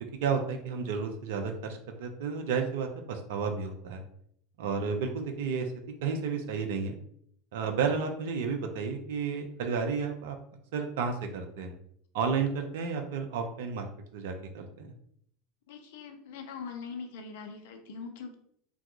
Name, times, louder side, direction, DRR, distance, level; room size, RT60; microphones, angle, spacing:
voice 1, 0.2-4.0 4.6-5.7 6.0-7.0 7.5-10.4 10.7-11.7 12.1-13.9 14.1-14.9, right 5 dB, 60° right, 5 dB, 0.4 m, -32 dB
voice 2, 15.7-18.3, left 5 dB, 60° left, 5 dB, 0.4 m, -42 dB
2.2 x 2.2 x 2.7 m, 0.68 s
figure-of-eight pair, 80°, 0 cm